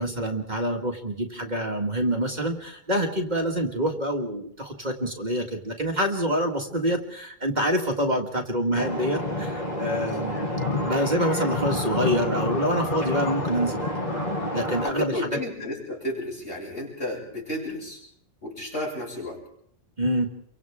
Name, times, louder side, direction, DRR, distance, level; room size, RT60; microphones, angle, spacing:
voice 1, 0.0-10.4 10.8-13.9 14.5-15.3 20.0-20.3, equal, 40° right, 3 dB, 2.0 m, -26 dB
sound 1, 8.7-14.9, left 1 dB, 35° left, 5.4 m, -28 dB
voice 2, 14.8-18.0 18.4-19.4, left 1 dB, 65° left, -2 dB, 7.2 m, -32 dB
30.0 x 24.5 x 3.6 m, 0.69 s
omnidirectional pair, 1.2 m